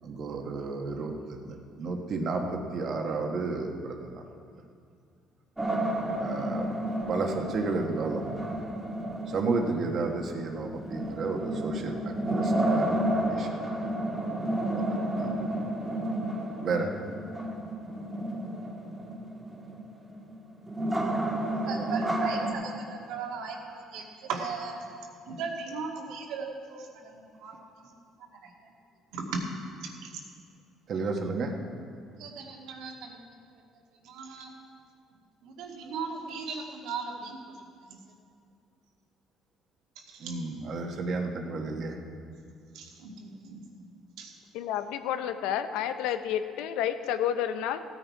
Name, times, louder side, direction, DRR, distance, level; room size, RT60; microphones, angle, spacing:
voice 1, 0.0-4.2 6.2-6.7 7.1-8.4 9.3-13.5 14.7-14.8 15.2-15.4 16.6-16.9 30.9-31.5 40.2-42.0, right 3 dB, 50° right, 3 dB, 1.5 m, -32 dB
sound 1, 5.6-22.5, right 1 dB, 10° right, 1.7 m, -31 dB
voice 2, 21.7-24.8 25.3-27.6 29.1-29.5 30.0-30.1 32.2-33.2 34.0-34.5 35.4-37.4 37.9-38.0 40.1-40.3 42.7-43.6 44.2-44.3, right 4 dB, 80° right, 0 dB, 2.0 m, -37 dB
voice 3, 44.5-47.8, left 10 dB, 85° left, 10 dB, 0.6 m, -30 dB
16.0 x 9.3 x 4.7 m, 2.3 s
cardioid pair, 120°, 0 cm